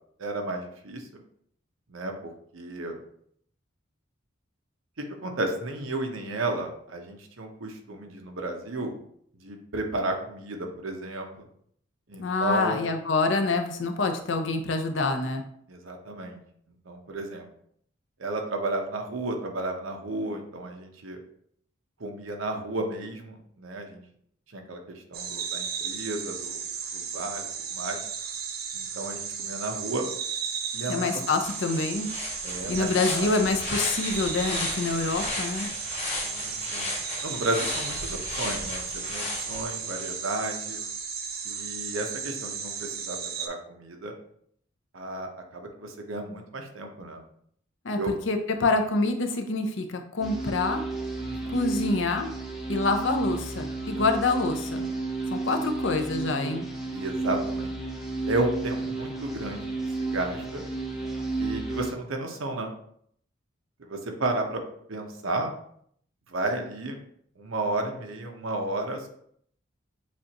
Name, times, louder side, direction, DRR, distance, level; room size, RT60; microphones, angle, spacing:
voice 1, 0.2-1.1 1.9-3.0 5.0-9.0 9.4-11.3 12.1-12.8 15.7-16.4 16.9-17.5 18.2-21.2 22.0-24.0 24.5-26.7 26.9-28.0 28.7-30.0 30.7-31.2 32.4-33.3 36.2-36.9 37.2-40.8 41.4-44.2 44.9-47.2 48.0-48.1 51.2-51.6 54.0-54.1 56.9-57.7 58.3-59.7 60.0-60.6 61.4-62.7 63.8-64.6 64.9-65.5 66.3-67.0 67.4-69.1, right 2 dB, 85° right, 3 dB, 0.8 m, -33 dB
voice 2, 12.2-15.4 30.9-32.1 32.7-35.7 47.8-50.8 51.5-52.3 52.7-54.9 55.3-56.7, left 3 dB, 70° left, 5 dB, 0.6 m, -26 dB
sound 1, 25.1-43.5, right 6 dB, 45° right, 0.5 m, -35 dB
sound 2, 31.0-31.1 31.4-40.1, left 2 dB, 30° left, 1.4 m, -35 dB
sound 3, 50.2-61.9, right 3 dB, ahead, 0.6 m, -32 dB
7.3 x 2.5 x 2.9 m, 0.66 s
head